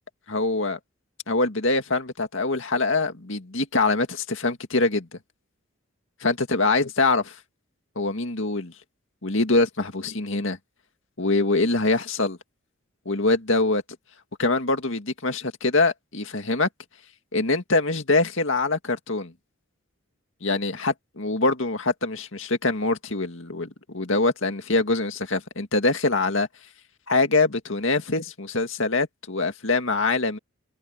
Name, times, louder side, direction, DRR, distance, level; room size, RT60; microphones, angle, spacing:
voice 1, 0.3-0.8 1.3-5.2 6.2-7.3 8.0-8.7 9.2-10.6 11.2-12.4 13.1-13.8 14.4-16.7 17.3-19.3 20.4-26.5 27.1-30.4, left 3 dB, 60° left, 2.2 m, -24 dB
head